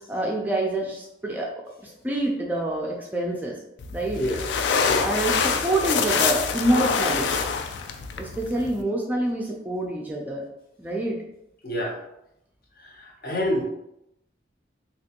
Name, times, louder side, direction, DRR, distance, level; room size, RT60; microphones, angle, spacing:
voice 1, 0.1-1.5 1.8-3.5 3.9-4.2 5.0-7.3 8.2-10.4 10.8-11.2, right 1 dB, 10° right, -2 dB, 0.4 m, -26 dB
sound 1, 3.8-8.8, left 5 dB, 75° left, 0.3 m, -25 dB
voice 2, 4.1-4.5 4.8-5.1 11.6-12.0 12.8-13.6, left 1 dB, 55° left, -1 dB, 0.8 m, -28 dB
3.3 x 2.9 x 2.8 m, 0.83 s
head